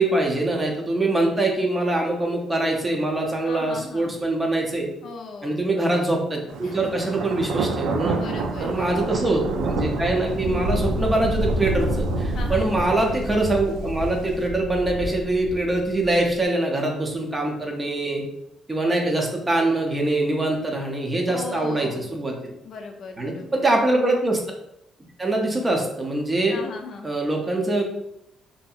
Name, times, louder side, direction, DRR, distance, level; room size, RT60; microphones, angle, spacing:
voice 1, 0.0-4.9 5.4-8.2 8.6-18.2 18.7-22.5 23.2-24.4 25.2-26.6 27.0-27.8, right 2 dB, 20° right, 1 dB, 0.6 m, -23 dB
voice 2, 3.4-4.2 5.0-5.6 6.6-7.0 8.1-9.2 12.3-12.8 21.2-22.1 22.6-23.7 26.5-27.1, left 4 dB, 55° left, 3 dB, 0.4 m, -38 dB
Thunder, 6.5-16.3, right 2 dB, 85° right, 0.3 m, -28 dB
2.7 x 2.6 x 2.3 m, 0.81 s
cardioid pair, 110°, 0 cm